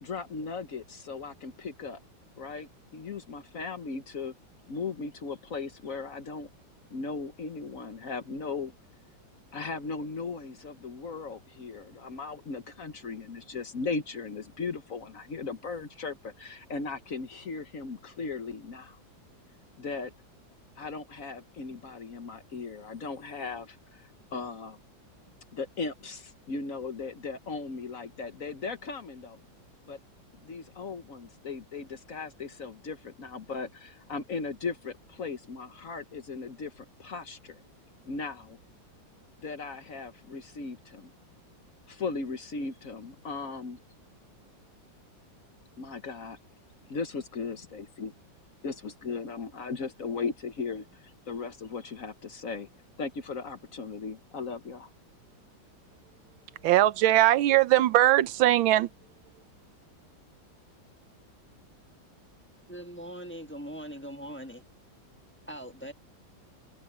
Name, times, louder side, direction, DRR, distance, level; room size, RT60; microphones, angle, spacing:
voice 1, 0.0-2.0 2.4-4.3 4.7-6.5 6.9-8.7 9.5-19.0 19.8-20.1 20.8-24.8 25.5-29.4 29.8-30.0 30.4-37.6 38.1-38.6 39.4-41.1 41.9-43.8 45.8-46.4 46.9-48.1 48.6-52.7 53.0-54.9, left 4 dB, 50° left, 1.3 m, -37 dB
voice 2, 56.6-58.9, right 14 dB, 85° right, 1.5 m, -21 dB
voice 3, 62.7-64.6 65.5-65.9, equal, 5° left, 1.1 m, -41 dB
omnidirectional pair, 2.1 m